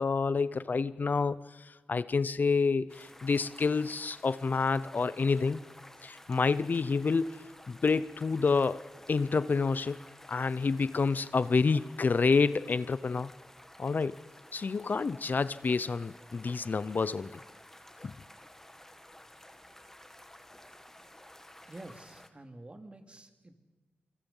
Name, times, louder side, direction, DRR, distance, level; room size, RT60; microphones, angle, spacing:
voice 1, 0.0-5.6 6.0-10.0 10.3-13.3 13.8-14.2 14.5-17.4 18.0-18.1, left 4 dB, 55° left, 16 dB, 0.7 m, -28 dB
sound 1, 2.9-22.3, left 1 dB, 10° left, 2.0 m, -53 dB
voice 2, 21.7-23.5, right 2 dB, 30° right, 6 dB, 2.8 m, -49 dB
27.0 x 25.0 x 5.6 m, 1.2 s
cardioid pair, 60°, 4 cm